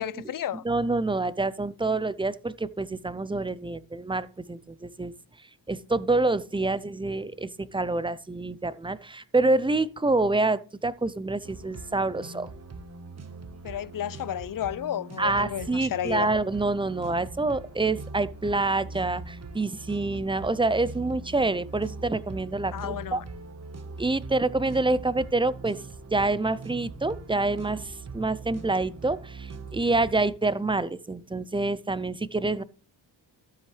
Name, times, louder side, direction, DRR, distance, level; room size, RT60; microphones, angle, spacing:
voice 1, 0.0-0.6 6.6-6.7 13.6-16.3 22.7-23.2, left 10 dB, 45° left, 0.6 m, -32 dB
voice 2, 0.6-5.1 5.7-12.5 15.2-23.2 24.0-25.8 26.1-32.6, right 2 dB, 10° right, 0.5 m, -27 dB
sound 1, 11.4-30.3, right 3 dB, 35° right, 1.3 m, -42 dB
13.0 x 7.7 x 3.3 m
cardioid pair, 90°, 45 cm